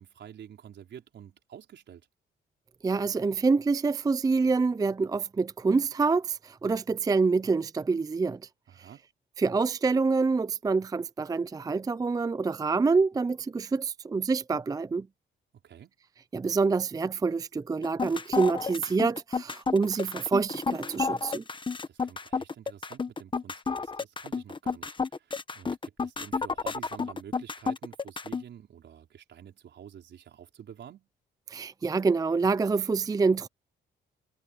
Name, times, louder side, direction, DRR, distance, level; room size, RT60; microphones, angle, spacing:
voice 1, 0.0-2.1 8.7-9.0 15.5-15.9 21.9-31.1, right 9 dB, 65° right, 5.0 m, -49 dB
voice 2, 2.8-8.5 8.8-8.9 9.4-15.1 16.3-21.4 31.5-33.5, right 4 dB, 20° right, 0.4 m, -26 dB
sound 1, 17.8-28.4, left 4 dB, 25° left, 1.2 m, -31 dB
cardioid pair, 90°, 20 cm